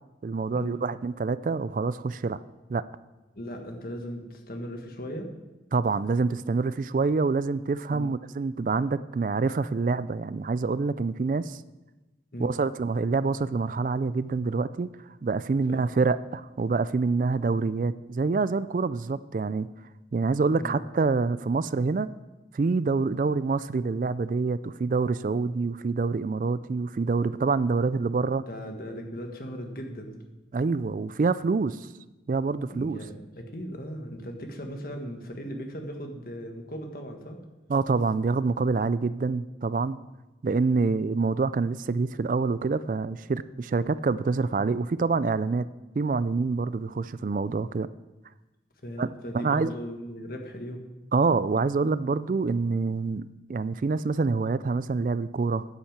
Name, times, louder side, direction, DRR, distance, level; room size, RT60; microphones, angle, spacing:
voice 1, 0.2-2.4 2.7-2.8 5.7-11.6 12.4-14.9 15.2-19.7 20.1-22.1 22.5-28.4 30.5-31.9 32.3-33.0 37.7-40.0 40.4-45.7 46.0-47.9 49.0-49.1 49.3-49.7 51.1-55.6, right 4 dB, 45° right, 16 dB, 0.3 m, -26 dB
voice 2, 3.3-5.3 7.9-8.1 12.3-12.6 15.7-15.9 20.6-20.8 28.4-30.2 32.7-37.4 43.7-43.9 48.8-50.9, equal, 55° left, 4 dB, 1.6 m, -38 dB
10.0 x 8.7 x 7.3 m, 1.1 s
head